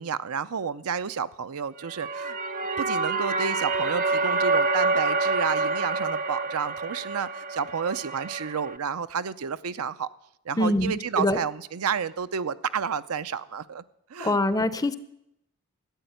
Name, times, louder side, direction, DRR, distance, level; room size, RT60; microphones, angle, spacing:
voice 1, 0.0-2.4 2.8-10.1 10.5-13.8 14.1-14.4, right 6 dB, 75° right, 13 dB, 0.6 m, -30 dB
sound 1, 1.8-8.8, right 3 dB, 35° right, 0.7 m, -27 dB
voice 2, 10.6-11.4 14.2-14.9, left 1 dB, 15° left, 13 dB, 0.6 m, -24 dB
13.0 x 8.9 x 9.2 m, 0.81 s
head